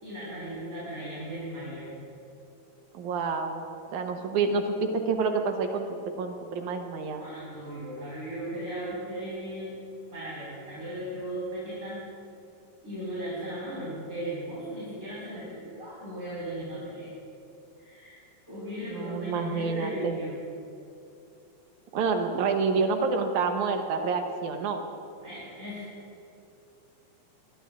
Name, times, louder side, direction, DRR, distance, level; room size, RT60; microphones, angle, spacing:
voice 1, 0.0-1.9 7.2-9.8 10.1-12.0 12.8-17.1 17.8-20.3 25.2-25.9, right 1 dB, 25° right, -9 dB, 4.3 m, -37 dB
voice 2, 2.9-3.7 3.9-7.2 18.9-20.2 21.9-24.8, right 4 dB, 75° right, 4 dB, 2.3 m, -28 dB
22.0 x 21.5 x 2.5 m, 2.6 s
omnidirectional pair, 3.6 m